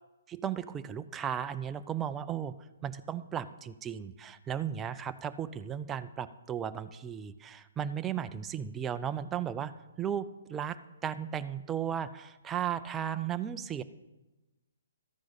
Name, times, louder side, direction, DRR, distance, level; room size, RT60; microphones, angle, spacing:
voice 1, 0.3-2.5 2.8-9.7 10.0-13.8, right 9 dB, 10° right, 10 dB, 0.3 m, -35 dB
13.5 x 9.9 x 4.0 m, 1.0 s
hypercardioid pair, 175°, 0 cm